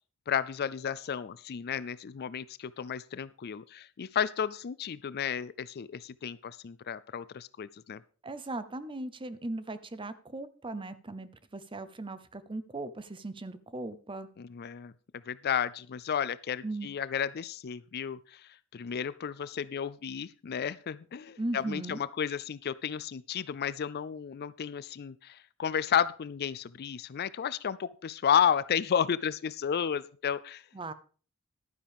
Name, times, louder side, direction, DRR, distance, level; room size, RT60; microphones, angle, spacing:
voice 1, 0.3-8.0 14.4-14.9 15.3-18.2 18.7-25.1 25.6-30.6, left 8 dB, 45° left, 18 dB, 0.4 m, -32 dB
voice 2, 8.2-14.3 16.6-16.9 21.4-22.0 30.7-30.9, right 2 dB, 25° right, 14 dB, 0.7 m, -38 dB
11.5 x 9.6 x 3.5 m, 0.40 s
head